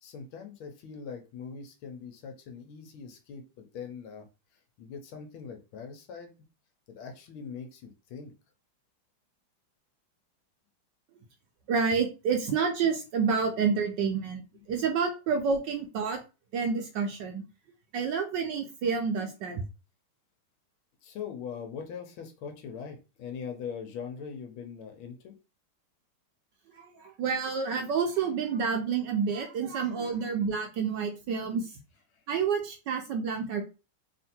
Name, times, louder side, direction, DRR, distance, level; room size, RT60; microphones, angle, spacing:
voice 1, 0.0-4.3 4.8-6.3 6.9-8.3 21.0-25.3 32.1-32.2, left 6 dB, 85° left, 5 dB, 1.6 m, -41 dB
voice 2, 11.7-16.2 16.5-17.4 17.9-19.6 26.7-31.7 32.3-33.6, right 5 dB, 70° right, 3 dB, 1.2 m, -29 dB
3.6 x 2.5 x 4.2 m, 0.30 s
omnidirectional pair, 2.3 m